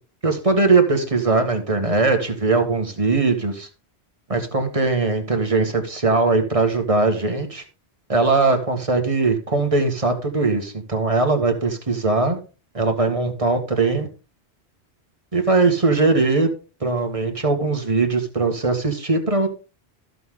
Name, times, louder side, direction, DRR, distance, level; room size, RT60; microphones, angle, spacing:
voice 1, 0.2-3.7 4.3-7.6 8.1-12.4 12.7-14.1 15.3-16.5 16.8-19.5, right 3 dB, 30° right, 4 dB, 1.7 m, -20 dB
14.0 x 6.5 x 3.7 m, 0.33 s
omnidirectional pair, 1.1 m